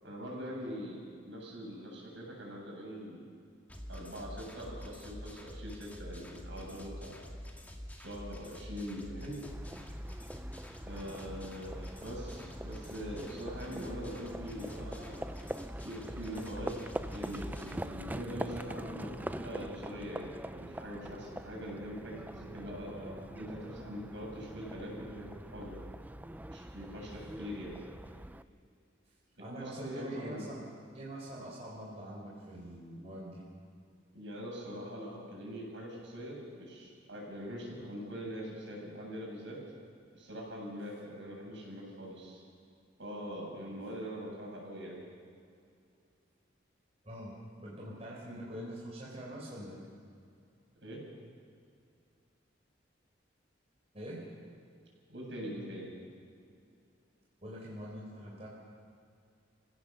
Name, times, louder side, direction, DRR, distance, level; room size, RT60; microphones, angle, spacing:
voice 1, 0.0-3.2 3.9-7.2 8.0-9.4 10.8-15.2 15.8-16.8 17.1-23.1 23.4-25.8 26.5-27.8 29.5-30.5 34.1-39.6 40.1-42.4 43.0-45.0 50.8-51.0 55.1-55.9, equal, 65° right, -2 dB, 7.5 m, -43 dB
sound 1, 3.7-17.7, equal, 10° left, 1.9 m, -46 dB
Livestock farm animals working animals, 9.4-28.4, right 1 dB, 10° right, 0.4 m, -44 dB
voice 2, 22.7-23.2 29.4-30.6 30.9-33.4 47.0-47.3 47.6-49.8 53.9-54.2 57.4-58.5, right 1 dB, 35° right, -4 dB, 4.4 m, -44 dB
30.0 x 16.5 x 6.9 m, 2.4 s
head